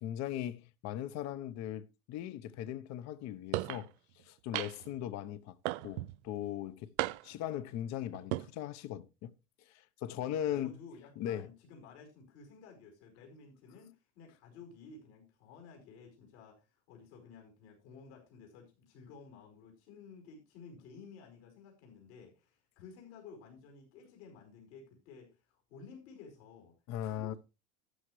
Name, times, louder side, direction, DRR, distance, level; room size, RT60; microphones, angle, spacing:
voice 1, 0.0-3.9 4.2-5.6 5.8-6.9 7.2-9.3 9.7-10.7 11.2-11.5 26.9-27.3, left 11 dB, 55° left, 1.0 m, -39 dB
sound 1, 3.5-3.8 4.5-4.9 5.6-6.1 7.0-7.5 8.1-8.5, right 19 dB, 75° right, 0.6 m, -35 dB
voice 2, 10.1-26.7 27.0-27.4, left 5 dB, 80° left, 5.0 m, -54 dB
13.0 x 9.8 x 3.2 m
supercardioid pair, 110°, 33 cm